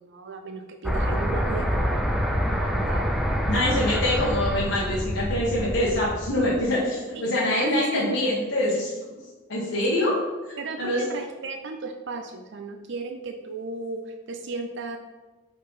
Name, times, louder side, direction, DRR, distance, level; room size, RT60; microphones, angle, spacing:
voice 1, 0.0-3.1 3.6-3.9 7.1-8.2 9.9-10.0 10.6-15.0, right 3 dB, 55° right, 4 dB, 0.5 m, -35 dB
sound 1, 0.8-6.7, equal, ahead, 0.5 m, -26 dB
voice 2, 3.5-8.9 9.5-10.1 10.8-11.0, left 1 dB, 55° left, -7 dB, 1.4 m, -25 dB
5.2 x 3.9 x 5.7 m, 1.2 s
head